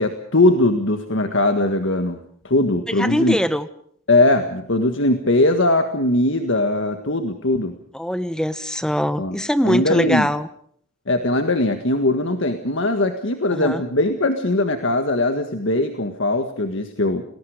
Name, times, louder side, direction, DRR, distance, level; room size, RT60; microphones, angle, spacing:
voice 1, 0.0-2.2 2.4-3.4 4.1-7.8 9.2-9.4 9.6-10.3 11.1-17.2, left 2 dB, 65° left, 6 dB, 1.7 m, -20 dB
voice 2, 3.0-3.7 7.9-10.5 13.5-13.8, equal, 5° left, 12 dB, 1.1 m, -22 dB
29.5 x 20.5 x 5.1 m, 0.62 s
head